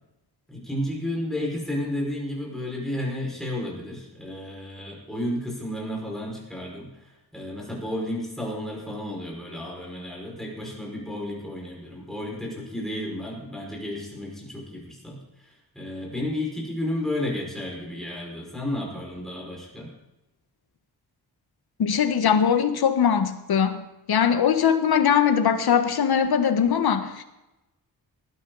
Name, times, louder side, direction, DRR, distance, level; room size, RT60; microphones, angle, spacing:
voice 1, 0.5-19.9, left 1 dB, ahead, 5.4 m, -32 dB
voice 2, 21.8-23.8 24.1-27.2, left 7 dB, 70° left, 1.5 m, -21 dB
19.0 x 12.5 x 4.1 m
wide cardioid pair, 150°, 39 cm